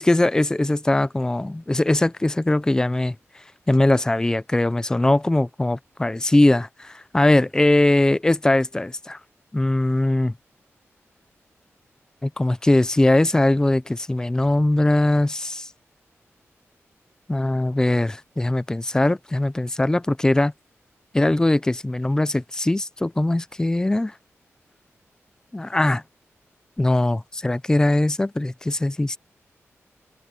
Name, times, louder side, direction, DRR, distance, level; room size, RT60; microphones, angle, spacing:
voice 1, 0.0-3.1 3.7-9.2 9.5-10.3 12.2-15.7 17.3-20.5 21.1-24.1 25.5-26.0 26.8-29.2, left 1 dB, 15° left, 0.5 m, -21 dB
wide cardioid pair, 115°, 5 cm